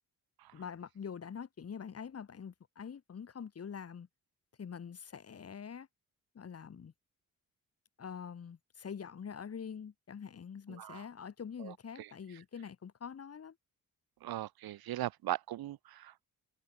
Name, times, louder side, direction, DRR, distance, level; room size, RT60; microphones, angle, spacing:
voice 1, 0.5-4.1 4.6-5.9 6.3-6.9 8.0-13.5, left 7 dB, 40° left, 3.1 m, -45 dB
voice 2, 14.2-16.3, right 14 dB, 90° right, 1.4 m, -38 dB
cardioid pair, 130°, 35 cm